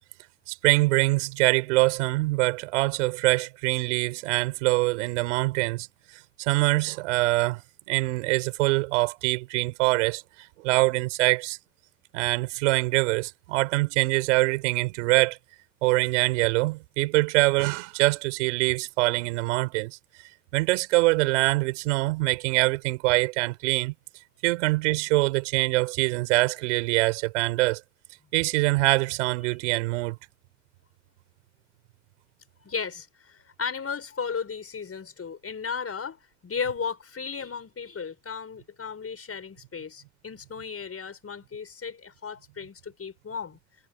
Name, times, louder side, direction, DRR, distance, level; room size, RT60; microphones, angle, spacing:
voice 1, 0.5-5.9 6.4-7.6 7.9-10.2 10.6-11.6 12.1-15.4 15.8-20.0 20.5-23.9 24.4-27.8 28.3-30.2, right 23 dB, 85° right, 4.3 m, -24 dB
voice 2, 32.6-43.6, left 6 dB, 40° left, 6.0 m, -35 dB
hypercardioid pair, 50°, 35 cm